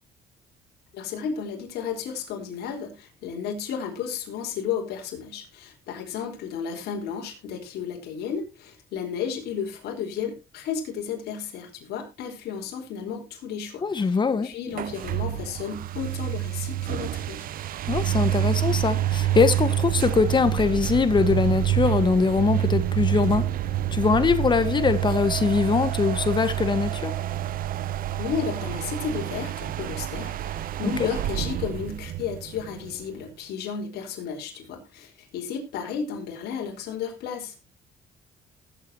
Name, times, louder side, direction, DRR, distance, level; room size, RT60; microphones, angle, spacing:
voice 1, 0.9-17.5 28.2-37.6, left 7 dB, 75° left, 4.6 m, -33 dB
voice 2, 13.8-14.5 17.9-23.4 23.9-27.1, left 5 dB, 25° left, 1.5 m, -22 dB
sound 1, 14.7-33.2, right 12 dB, 55° right, 0.8 m, -27 dB
19.5 x 8.5 x 2.9 m
cardioid pair, 110°, 17 cm